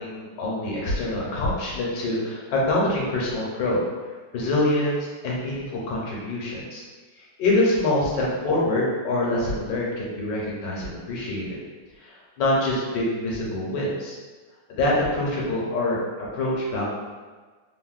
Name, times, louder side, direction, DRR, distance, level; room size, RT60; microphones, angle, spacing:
voice 1, 0.0-3.8 4.3-6.8 7.2-11.6 12.0-14.2 14.7-16.9, left 1 dB, 70° left, -4 dB, 1.3 m, -25 dB
3.5 x 2.1 x 2.4 m, 1.4 s
omnidirectional pair, 2.1 m